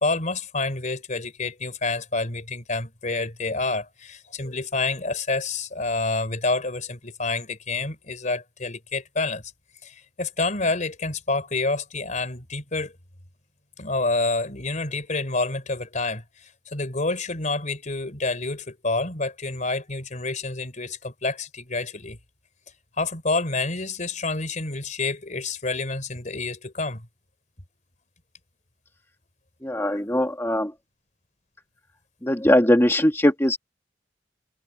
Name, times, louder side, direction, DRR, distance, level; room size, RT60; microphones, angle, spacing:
voice 1, 0.0-9.4 9.8-12.9 13.8-16.2 16.7-22.2 23.0-27.1, left 3 dB, 45° left, 3.7 m, -28 dB
voice 2, 29.6-30.7 32.2-33.6, left 1 dB, 15° left, 2.0 m, -20 dB
head